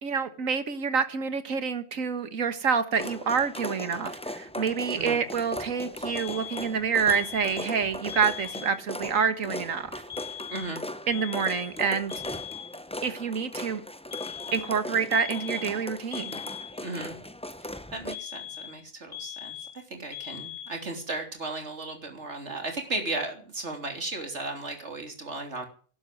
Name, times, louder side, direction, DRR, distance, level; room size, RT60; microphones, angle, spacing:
voice 1, 0.0-10.0 11.1-12.1 13.0-13.8 14.5-16.4, right 6 dB, 70° right, 11 dB, 1.9 m, -27 dB
sound 1, 2.9-18.2, left 1 dB, 5° left, 0.5 m, -38 dB
sound 2, 6.1-6.8 7.1-7.8 8.1-8.8 10.1-10.8 11.1-11.8 12.1-12.8 14.1-14.8 15.1-15.8 16.1-16.8 18.1-18.8 19.1-19.8 20.1-20.8, left 11 dB, 65° left, 3.0 m, -40 dB
voice 2, 10.5-10.8 16.8-17.2 17.9-19.6 19.9-25.6, right 2 dB, 55° right, 4 dB, 3.6 m, -35 dB
11.5 x 11.5 x 9.4 m, 0.43 s
omnidirectional pair, 1.4 m